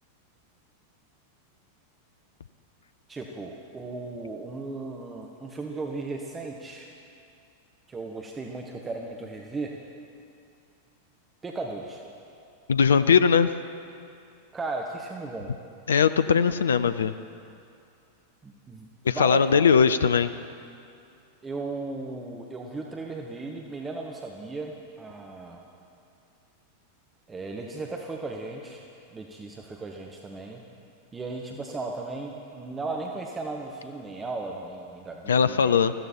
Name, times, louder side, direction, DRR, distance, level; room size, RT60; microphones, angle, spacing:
voice 1, 3.1-6.9 7.9-9.7 11.4-12.0 14.5-15.5 18.4-19.6 21.4-25.6 27.3-28.8 29.1-30.6 31.1-35.8, right 3 dB, 15° right, 1 dB, 1.2 m, -36 dB
voice 2, 12.7-13.5 15.9-17.1 19.0-20.3 35.3-35.9, left 6 dB, 70° left, 13 dB, 0.4 m, -20 dB
20.5 x 15.0 x 4.5 m, 2.5 s
figure-of-eight pair, 90°, 0 cm